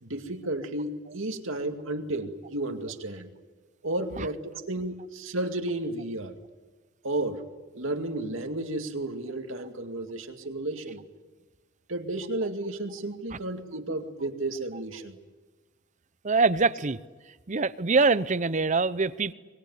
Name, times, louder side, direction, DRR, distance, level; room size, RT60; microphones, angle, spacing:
voice 1, 0.0-3.3 3.8-6.4 7.0-7.4 7.7-11.0 11.9-15.2, right 2 dB, 80° right, 2.3 m, -32 dB
voice 2, 16.2-17.0 17.5-19.3, right 4 dB, 40° right, 0.8 m, -24 dB
24.0 x 22.0 x 9.6 m
head